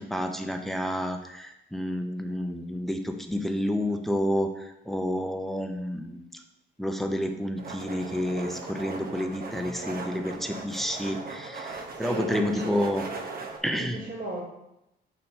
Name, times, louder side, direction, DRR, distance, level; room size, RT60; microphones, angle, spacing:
voice 1, 0.0-6.4 6.8-13.0 13.6-14.0, equal, ahead, 4 dB, 0.7 m, -30 dB
sound 1, 7.6-13.6, right 3 dB, 50° right, 0.9 m, -38 dB
voice 2, 12.0-12.8 13.8-14.4, right 1 dB, 70° right, -9 dB, 2.3 m, -36 dB
4.3 x 4.2 x 5.3 m, 0.87 s
cardioid pair, 90°, 20 cm